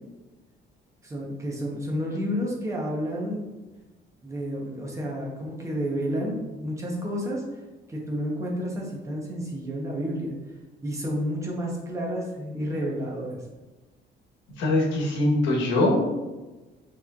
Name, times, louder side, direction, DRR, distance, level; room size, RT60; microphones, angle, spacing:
voice 1, 1.0-3.5 4.2-7.4 7.9-10.3 10.8-13.4, equal, 15° right, -2 dB, 0.7 m, -30 dB
voice 2, 14.6-16.1, left 1 dB, 85° left, -1 dB, 1.0 m, -22 dB
6.0 x 3.1 x 2.3 m, 1.1 s
cardioid pair, 170°, 19 cm